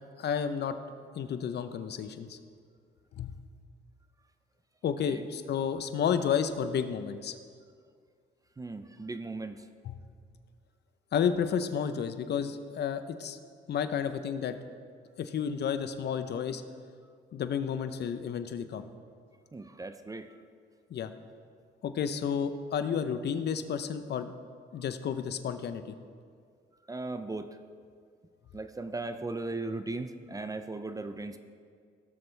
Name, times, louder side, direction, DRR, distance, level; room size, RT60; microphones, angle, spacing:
voice 1, 0.2-2.4 3.1-3.3 4.8-7.3 9.8-10.0 11.1-13.4 13.7-14.6 15.2-16.6 17.3-18.9 20.9-21.1 21.8-24.3 24.7-25.9, left 7 dB, 55° left, 10 dB, 0.7 m, -31 dB
voice 2, 8.6-9.6 19.5-20.4 26.9-27.6 28.5-31.4, right 2 dB, 15° right, 9 dB, 0.5 m, -37 dB
17.0 x 6.8 x 3.3 m, 2.1 s
cardioid pair, 90°, 20 cm